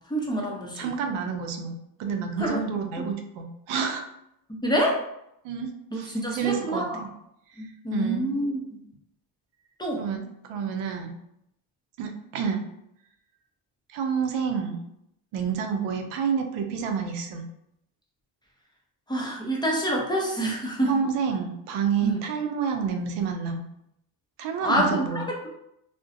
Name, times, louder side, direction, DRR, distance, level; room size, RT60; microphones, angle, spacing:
voice 1, 0.1-0.9 2.4-2.6 3.0-3.1 4.5-5.0 5.9-7.0 7.6-8.6 9.8-10.1 19.1-21.0 22.0-22.2 24.6-25.5, equal, 10° left, -2 dB, 0.6 m, -27 dB
voice 2, 0.8-4.1 5.4-7.1 7.5-7.6 7.9-8.3 10.0-11.1 12.0-12.6 13.9-14.8 15.3-17.5 20.9-23.6 24.4-25.3, right 6 dB, 80° right, 4 dB, 0.6 m, -29 dB
2.4 x 2.1 x 2.5 m, 0.78 s
supercardioid pair, 60°, 49 cm